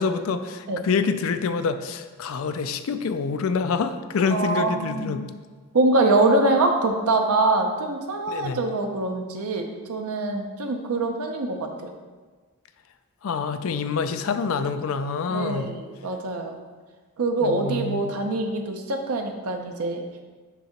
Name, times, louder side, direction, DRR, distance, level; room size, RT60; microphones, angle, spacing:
voice 1, 0.0-5.3 8.3-8.6 13.2-15.7 17.4-18.1, left 5 dB, 70° left, 10 dB, 0.4 m, -26 dB
voice 2, 4.3-5.2 5.7-11.9 15.3-16.6 17.2-20.1, right 2 dB, 90° right, 3 dB, 0.7 m, -24 dB
6.9 x 2.8 x 5.7 m, 1.4 s
head